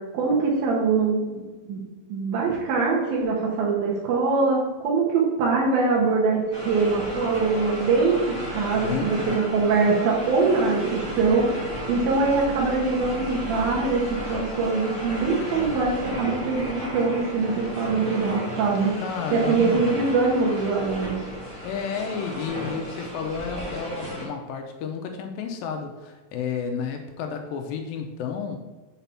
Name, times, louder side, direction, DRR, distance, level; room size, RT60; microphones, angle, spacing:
voice 1, 0.1-1.8 2.1-14.0 14.3-18.9 19.3-21.1, right 4 dB, 80° right, -2 dB, 2.9 m, -23 dB
sound 1, 6.5-24.2, equal, 20° right, 0.6 m, -34 dB
voice 2, 8.8-9.4 19.0-19.8 21.6-28.6, left 6 dB, 85° left, 4 dB, 2.3 m, -31 dB
6.9 x 4.2 x 5.7 m, 1.2 s
omnidirectional pair, 4.3 m